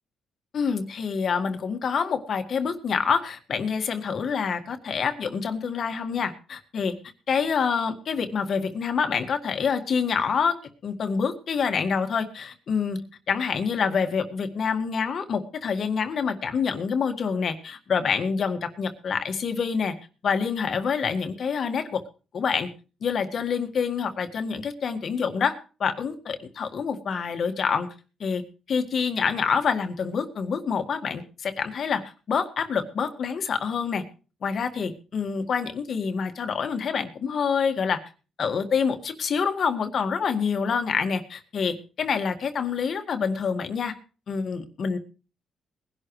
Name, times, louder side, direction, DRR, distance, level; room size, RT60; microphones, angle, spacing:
voice 1, 0.5-6.9 7.3-10.6 10.8-13.0 13.3-20.0 20.2-22.0 22.3-22.7 23.0-27.9 28.2-28.4 28.7-34.0 34.4-38.0 38.4-43.9 44.3-45.0, left 6 dB, 55° left, 6 dB, 1.9 m, -27 dB
20.5 x 11.5 x 3.2 m, 0.35 s
cardioid pair, 90°, 0 cm